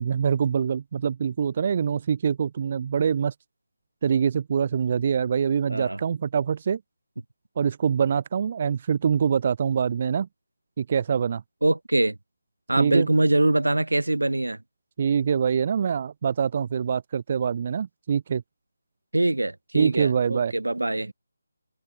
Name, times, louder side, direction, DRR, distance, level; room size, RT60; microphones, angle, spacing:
voice 1, 0.0-3.3 4.0-6.8 7.6-10.3 10.8-11.4 12.8-13.1 15.0-18.4 19.7-20.5, right 7 dB, 35° right, 0.3 m, -24 dB
voice 2, 11.6-12.2 12.7-14.6 19.1-21.1, right 2 dB, 75° right, 2.6 m, -23 dB
figure-of-eight pair, 155°, 0 cm